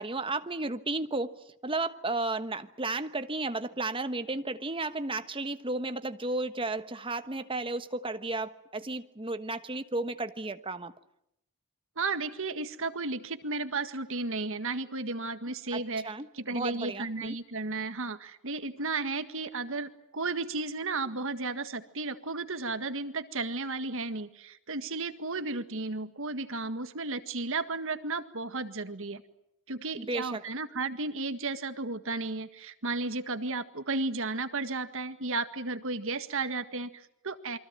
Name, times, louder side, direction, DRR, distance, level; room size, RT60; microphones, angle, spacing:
voice 1, 0.0-10.9 15.7-17.4 30.0-30.4, right 2 dB, 25° right, 1.3 m, -33 dB
voice 2, 12.0-29.2 29.7-37.6, right 3 dB, 65° right, 1.8 m, -34 dB
28.5 x 23.5 x 7.6 m
head